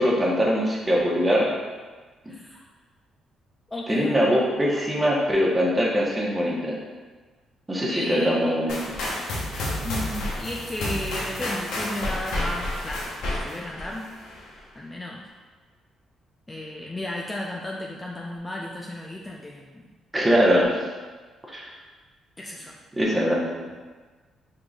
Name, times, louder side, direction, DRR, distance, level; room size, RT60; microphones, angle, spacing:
voice 1, 0.0-1.5 3.9-6.8 7.7-8.7 20.1-20.7 21.5-21.7 22.9-23.7, equal, 15° right, -3 dB, 1.0 m, -22 dB
voice 2, 2.3-2.6 3.7-4.1 7.9-8.5 9.8-14.1 14.7-15.2 16.5-19.9 22.4-22.8, left 1 dB, 15° left, -2 dB, 0.4 m, -34 dB
sound 1, 8.7-14.5, left 1 dB, 85° left, 0.9 m, -30 dB
4.9 x 3.7 x 2.4 m, 1.4 s
cardioid pair, 90°, 0 cm